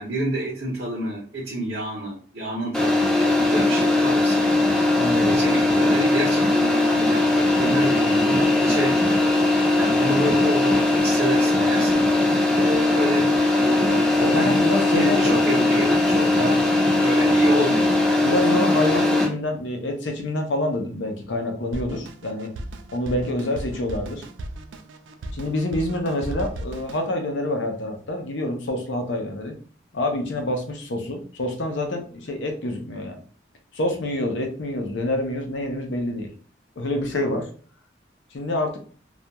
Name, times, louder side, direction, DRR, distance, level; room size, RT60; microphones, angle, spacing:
voice 1, 0.0-4.6 5.2-9.3 9.7-12.0 12.5-16.6 17.0-18.3 18.9-19.1, right 1 dB, 55° right, -5 dB, 0.7 m, -29 dB
sound 1, 2.7-19.3, left 2 dB, ahead, 0.5 m, -19 dB
voice 2, 5.0-5.3 14.2-15.4 16.3-16.6 18.2-22.5 22.9-24.3 25.3-29.5 29.9-33.2 33.7-36.3 36.8-37.5 38.3-38.8, left 1 dB, 80° left, 4 dB, 0.6 m, -27 dB
Drum kit, 21.7-27.1, right 1 dB, 85° right, 0.3 m, -36 dB
2.3 x 2.2 x 2.8 m, 0.43 s
head